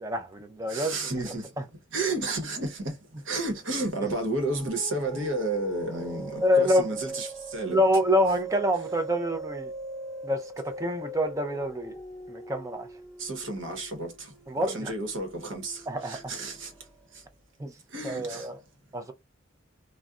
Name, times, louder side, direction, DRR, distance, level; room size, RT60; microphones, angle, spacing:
voice 1, 0.0-1.0 6.4-6.9 7.6-9.7 10.2-11.9 12.3-12.9 14.5-14.9 15.9-16.3 17.6-17.7 18.0-18.6 18.9-19.1, equal, 15° right, 0.4 m, -26 dB
voice 2, 0.7-1.6 1.9-7.8 13.2-14.3 14.6-17.3 17.9-18.6, right 2 dB, 70° right, 1.0 m, -32 dB
sound 1, 4.2-17.1, right 2 dB, ahead, 0.9 m, -41 dB
2.5 x 2.1 x 3.5 m
head